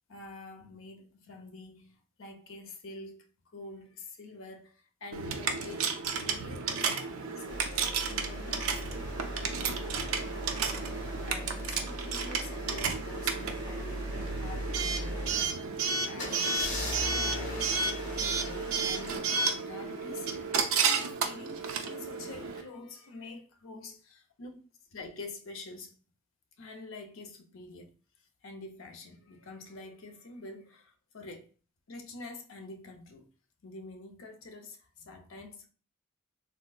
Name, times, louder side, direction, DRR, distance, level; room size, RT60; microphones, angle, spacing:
voice 1, 0.1-3.3 3.5-9.1 9.4-10.6 11.3-15.2 15.6-15.7 16.1-16.6 16.9-24.6 24.9-26.0 26.6-28.0 28.4-31.5 31.9-33.3 33.6-35.7, left 3 dB, 70° left, 0.6 m, -47 dB
Coin (dropping) / Alarm, 5.1-22.6, right 5 dB, 80° right, 0.5 m, -32 dB
sound 1, 7.5-15.5 16.2-19.2, equal, 35° left, 0.9 m, -39 dB
3.5 x 2.6 x 2.3 m
head